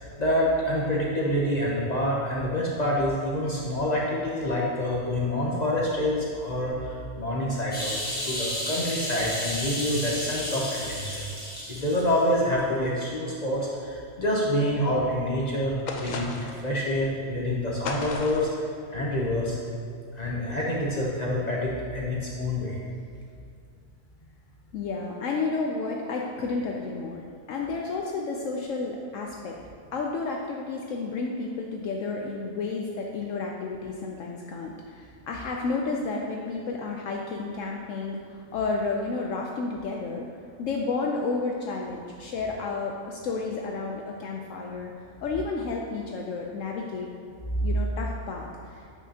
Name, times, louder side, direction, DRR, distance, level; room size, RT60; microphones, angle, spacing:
voice 1, 0.2-11.3 11.7-19.6 20.1-22.8 47.5-47.7, left 1 dB, 40° left, -4 dB, 0.7 m, -27 dB
sound 1, 7.7-12.2 12.6-12.7, equal, 5° left, 1.3 m, -33 dB
sound 2, 15.9-16.7 17.8-18.6, left 4 dB, 90° left, 0.4 m, -34 dB
voice 2, 24.7-29.6 29.9-40.3 40.6-44.9 45.2-47.1 47.6-48.9, left 4 dB, 70° left, 0 dB, 0.9 m, -31 dB
8.1 x 5.5 x 2.8 m, 2.4 s
omnidirectional pair, 1.4 m